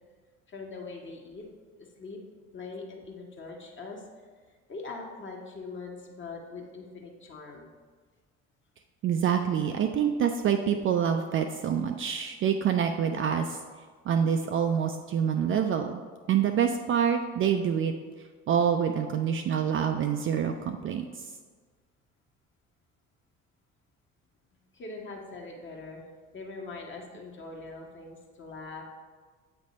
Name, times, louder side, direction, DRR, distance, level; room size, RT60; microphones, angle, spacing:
voice 1, 0.5-1.5 1.8-2.2 2.5-4.0 4.7-7.7 24.7-26.0 26.3-28.8, left 3 dB, 30° left, 0 dB, 1.3 m, -42 dB
voice 2, 9.0-13.6 14.1-16.0 16.3-17.9 18.5-21.0, right 8 dB, 35° right, 6 dB, 0.4 m, -26 dB
8.2 x 3.3 x 4.1 m, 1.5 s
figure-of-eight pair, 55°, 36 cm